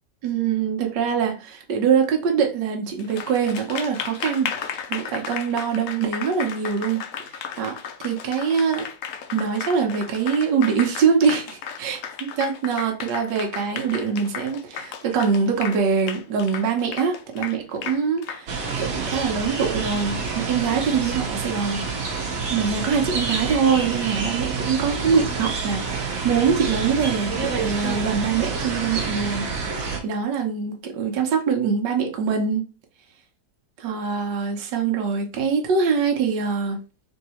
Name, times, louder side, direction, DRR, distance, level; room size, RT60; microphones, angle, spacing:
voice 1, 0.2-7.0 7.3-7.7 8.0-8.9 9.3-21.8 22.5-29.5 29.7-32.7 33.8-36.8, right 6 dB, 75° right, 1.5 m, -23 dB
Applause, 3.0-20.7, left 7 dB, 75° left, 0.7 m, -34 dB
sound 1, 18.5-30.0, right 4 dB, 55° right, 1.3 m, -28 dB
3.9 x 2.7 x 4.3 m
omnidirectional pair, 2.0 m